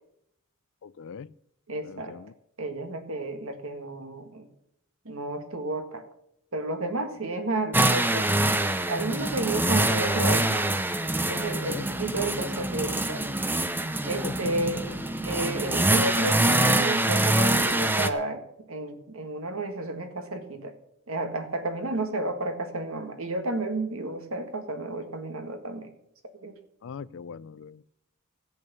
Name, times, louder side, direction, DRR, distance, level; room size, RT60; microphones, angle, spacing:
voice 1, 0.8-1.3 1.8-2.3 11.6-11.9 14.2-15.0 26.8-27.9, left 6 dB, 60° left, 19 dB, 0.4 m, -41 dB
voice 2, 1.7-2.1 2.6-4.5 5.0-6.1 6.5-8.3 8.9-10.6 11.3-13.3 14.0-14.8 15.2-18.4 18.7-20.7 21.1-25.9 26.4-26.6, right 2 dB, 65° right, 7 dB, 1.7 m, -31 dB
sound 1, 7.7-18.1, right 1 dB, 10° right, 0.6 m, -25 dB
14.0 x 8.5 x 6.9 m, 0.77 s
head